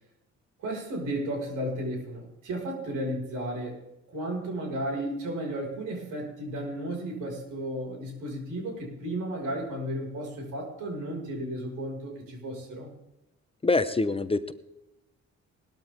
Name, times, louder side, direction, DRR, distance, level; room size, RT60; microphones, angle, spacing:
voice 1, 0.6-12.9, right 1 dB, 85° right, 0 dB, 5.5 m, -34 dB
voice 2, 13.6-14.5, left 3 dB, 20° left, 11 dB, 0.8 m, -25 dB
19.0 x 13.0 x 3.6 m, 0.91 s
cardioid pair, 90°, 30 cm